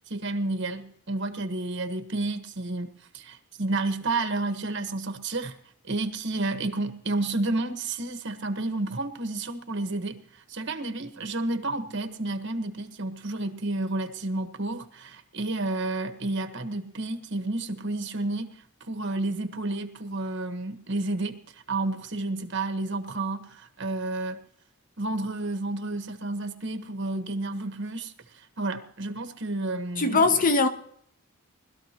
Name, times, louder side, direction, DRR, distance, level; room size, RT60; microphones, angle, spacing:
voice 1, 0.1-2.9 3.1-5.5 5.8-10.2 10.5-21.4 21.7-24.4 25.0-28.1 28.6-30.3, right 2 dB, 55° right, 1.3 m, -31 dB
voice 2, 30.0-30.7, left 3 dB, 40° left, 0.8 m, -21 dB
20.5 x 13.0 x 2.9 m
head